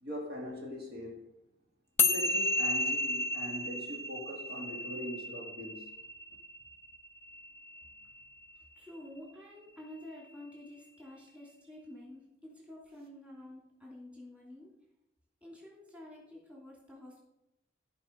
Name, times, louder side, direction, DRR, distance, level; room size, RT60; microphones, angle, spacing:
voice 1, 0.0-1.3 2.0-5.9, equal, 55° right, 2.4 m, -41 dB
sound 1, 2.0-8.6, left 2 dB, 15° left, 0.3 m, -33 dB
voice 2, 8.8-14.7 15.4-17.2, left 1 dB, 5° right, 3.0 m, -50 dB
15.0 x 5.2 x 5.3 m
head